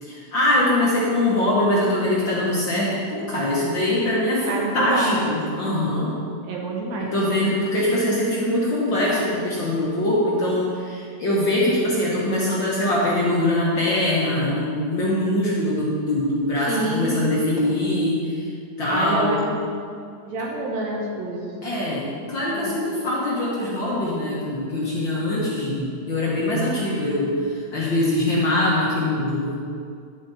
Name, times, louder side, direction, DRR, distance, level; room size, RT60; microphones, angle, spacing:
voice 1, 0.0-6.1 7.1-18.5 18.8-19.4 21.6-29.5, left 1 dB, 50° left, -6 dB, 1.6 m, -23 dB
voice 2, 4.5-5.3 6.4-7.1 16.7-17.3 18.9-19.5 20.3-21.5 22.5-22.8, right 2 dB, 70° right, -1 dB, 2.4 m, -27 dB
11.0 x 7.2 x 4.2 m, 2.3 s
omnidirectional pair, 3.5 m